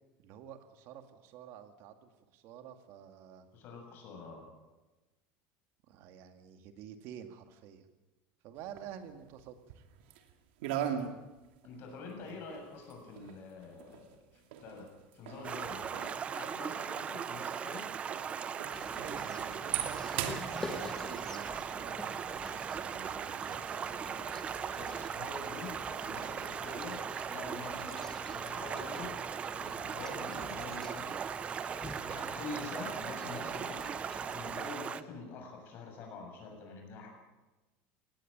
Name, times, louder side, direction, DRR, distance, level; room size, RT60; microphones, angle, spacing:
voice 1, 0.2-3.5 5.9-7.9 8.4-9.8 12.2-12.4 19.2-24.3, right 9 dB, 50° right, 7 dB, 2.1 m, -50 dB
voice 2, 3.5-4.5 11.6-17.9 24.7-34.1 34.3-37.1, left 4 dB, 40° left, 3 dB, 7.3 m, -46 dB
sound 1, 8.6-10.3 10.6-27.9, right 9 dB, 85° right, 2.6 m, -43 dB
Stream, 15.4-35.0, right 7 dB, 20° right, 0.6 m, -38 dB
sound 2, 18.7-34.7, left 2 dB, 10° left, 1.5 m, -48 dB
19.5 x 17.0 x 8.9 m, 1.1 s
cardioid pair, 165°, 5 cm